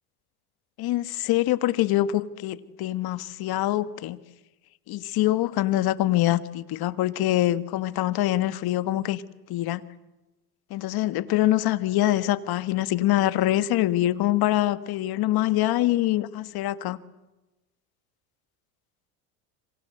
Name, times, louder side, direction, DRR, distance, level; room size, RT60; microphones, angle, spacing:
voice 1, 0.8-4.2 4.9-9.2 9.5-9.8 10.7-17.0, left 14 dB, 55° left, 1.7 m, -24 dB
27.5 x 26.0 x 8.0 m
supercardioid pair, 95°, 43 cm